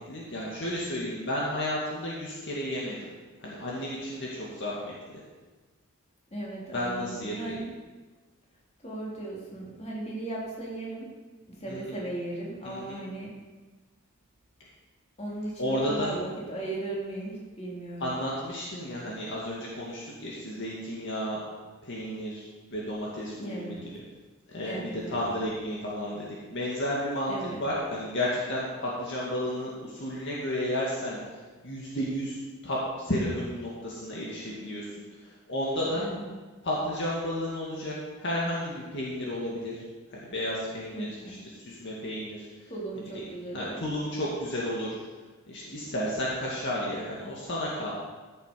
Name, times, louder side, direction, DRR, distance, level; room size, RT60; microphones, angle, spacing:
voice 1, 0.0-3.1 3.4-5.2 6.7-7.6 11.7-11.9 12.6-13.0 15.6-16.1 18.0-21.4 21.8-23.7 24.5-27.3 27.6-31.2 31.6-32.4 32.6-34.8 35.2-36.0 36.6-39.8 40.1-42.7 43.5-45.0 45.5-47.9, left 1 dB, 55° left, -5 dB, 2.0 m, -32 dB
voice 2, 6.3-7.7 8.8-11.1 11.5-13.3 15.2-18.1 23.4-23.9 24.6-25.3 27.3-27.6 35.9-36.4 40.9-41.4 42.7-43.8, right 2 dB, 30° left, -4 dB, 3.0 m, -37 dB
14.0 x 7.1 x 5.2 m, 1.3 s
head